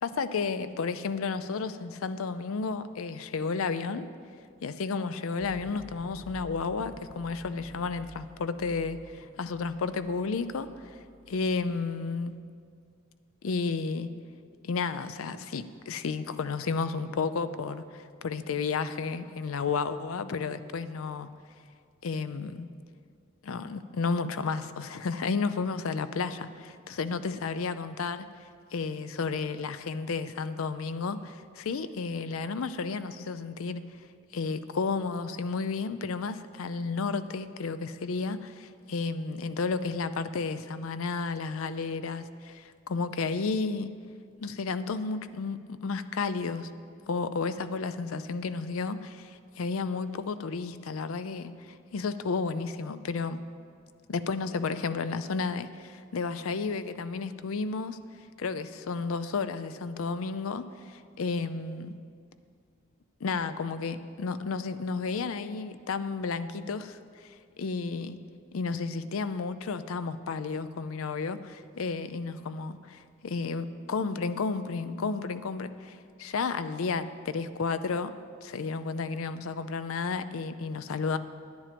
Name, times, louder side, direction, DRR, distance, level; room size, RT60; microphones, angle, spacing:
voice 1, 0.0-4.1 4.6-11.0 11.3-12.4 13.4-14.1 14.6-21.3 22.0-22.7 23.4-28.3 28.7-33.8 34.3-43.9 44.4-46.7 47.1-53.4 54.1-58.0 58.4-62.0 63.2-68.2 68.5-78.1 78.4-81.2, left 4 dB, 75° left, 12 dB, 0.5 m, -32 dB
sound 1, 5.4-12.2, equal, 5° right, 0.7 m, -51 dB
10.5 x 9.8 x 5.1 m, 2.2 s
head